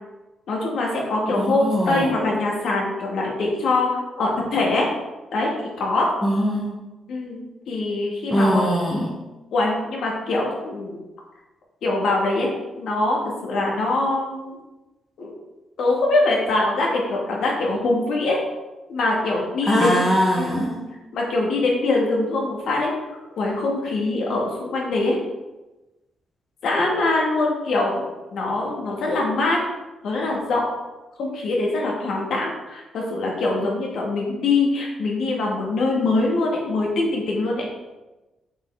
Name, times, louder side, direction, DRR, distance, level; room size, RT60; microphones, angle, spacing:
voice 1, 0.5-4.9 5.3-5.5 5.8-6.1 7.1-7.4 7.7-8.7 9.5-11.0 11.8-13.2 13.4-14.5 15.2-15.3 15.8-18.4 18.9-20.0 20.4-20.7 21.1-22.9 23.4-25.2 26.6-29.6 30.0-30.6 31.2-37.6, left 2 dB, 70° left, -2 dB, 2.0 m, -23 dB
voice 2, 1.3-2.1 6.2-6.7 8.3-9.1 19.7-20.8, equal, 5° left, -4 dB, 1.0 m, -21 dB
7.7 x 5.0 x 3.7 m, 1.1 s
cardioid pair, 150°, 0 cm